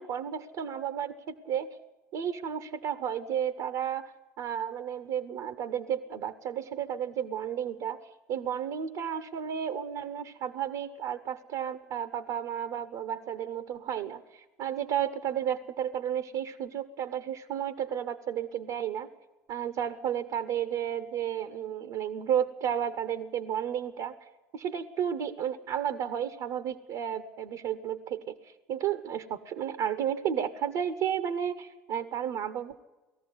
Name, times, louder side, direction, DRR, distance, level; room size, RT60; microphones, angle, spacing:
voice 1, 0.0-1.8 2.1-4.1 4.4-8.0 8.3-19.1 19.5-32.8, right 9 dB, 65° right, 12 dB, 1.0 m, -32 dB
19.5 x 14.5 x 9.5 m, 1.2 s
hypercardioid pair, 75°, 9 cm